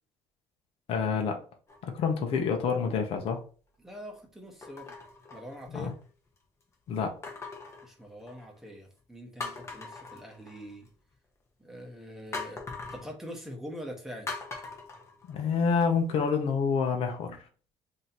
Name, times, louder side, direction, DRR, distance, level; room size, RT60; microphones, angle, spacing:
voice 1, 0.9-1.4 1.8-3.4 5.7-5.9 6.9-7.2 15.3-17.4, left 5 dB, 55° left, 0.8 m, -28 dB
sound 1, 1.7-2.2 2.8-3.0 4.6-6.1 7.2-8.6 9.0-9.1 9.4-10.9 12.3-13.1 14.3-15.8 16.3-16.4, left 3 dB, 25° left, 0.9 m, -41 dB
voice 2, 3.8-5.0 5.3-6.0 7.8-10.9 11.6-12.6 12.9-14.3, equal, 5° right, 1.1 m, -44 dB
3.1 x 2.8 x 4.0 m
cardioid pair, 130°, 11 cm